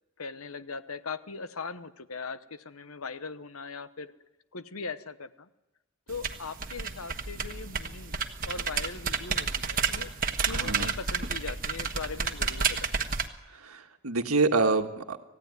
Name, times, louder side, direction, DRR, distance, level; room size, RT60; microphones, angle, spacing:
voice 1, 0.2-4.1 4.5-5.5 6.1-10.1 10.4-12.9, left 4 dB, 80° left, 13 dB, 1.0 m, -40 dB
sound 1, 6.1-13.3, right 5 dB, 40° right, 1.4 m, -31 dB
voice 2, 10.5-10.9 13.5-15.2, right 3 dB, 85° right, 6 dB, 1.7 m, -27 dB
28.0 x 16.0 x 9.5 m, 1.1 s
head